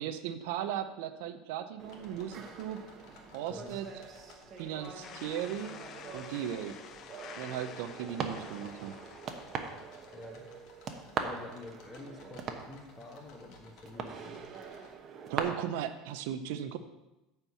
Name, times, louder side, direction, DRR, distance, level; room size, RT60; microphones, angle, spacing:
voice 1, 0.0-2.9 3.3-3.9 4.6-5.7 6.1-6.8 7.4-9.0 15.3-16.8, right 10 dB, 80° right, 9 dB, 0.6 m, -37 dB
sound 1, 1.8-14.9, left 3 dB, 60° left, 1.7 m, -58 dB
sound 2, 1.8-15.4, right 6 dB, 35° right, 1.0 m, -42 dB
voice 2, 3.5-3.8 10.1-10.5 10.9-14.5, left 2 dB, 20° left, 5 dB, 1.2 m, -48 dB
sound 3, 5.0-10.8, left 8 dB, 40° left, 0.5 m, -50 dB
9.0 x 4.5 x 7.0 m, 1.0 s
supercardioid pair, 130°, 0 cm